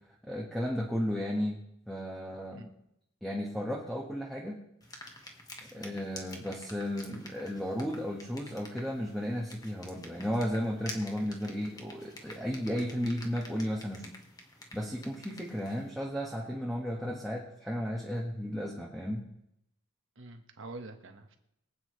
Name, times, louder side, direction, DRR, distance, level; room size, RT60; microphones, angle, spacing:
voice 1, 0.2-2.7 3.2-4.6 5.7-14.1 14.7-19.2, equal, ahead, -2 dB, 1.4 m, -34 dB
sound 1, 4.8-15.9, left 1 dB, 15° left, 1.5 m, -49 dB
voice 2, 20.2-21.4, right 2 dB, 60° right, 5 dB, 1.4 m, -46 dB
23.5 x 8.7 x 3.3 m, 0.80 s
head